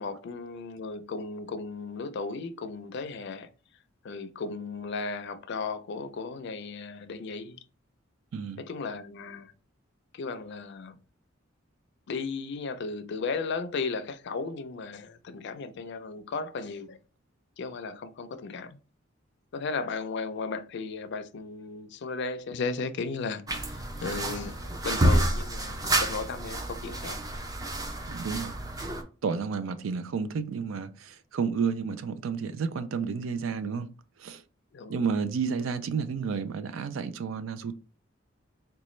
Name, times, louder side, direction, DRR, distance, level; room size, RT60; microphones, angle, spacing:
voice 1, 0.0-3.5 4.0-7.6 8.6-9.5 10.1-11.0 12.1-17.0 17.6-18.8 19.5-24.6 24.8-27.2 34.7-35.0, left 4 dB, 60° left, 0.4 m, -35 dB
voice 2, 8.3-8.6 28.1-28.6 29.2-33.9 34.2-34.4 34.9-37.8, right 5 dB, 80° right, 0.4 m, -31 dB
sound 1, 23.5-29.0, right 1 dB, 20° right, 0.4 m, -29 dB
3.9 x 2.2 x 3.1 m
head